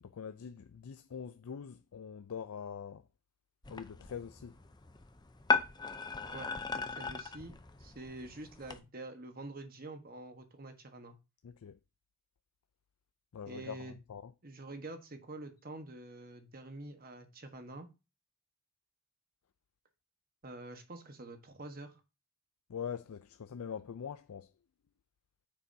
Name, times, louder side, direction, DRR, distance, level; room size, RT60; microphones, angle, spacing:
voice 1, 0.0-3.0 3.7-4.6 11.4-11.8 13.3-14.3 22.7-24.5, left 7 dB, 80° left, 0.4 m, -43 dB
sound 1, 3.6-8.8, left 4 dB, 20° left, 0.6 m, -37 dB
voice 2, 6.3-11.2 13.5-14.0 14.4-17.9 20.4-22.0, right 2 dB, 40° right, 1.2 m, -47 dB
9.0 x 6.9 x 2.7 m
head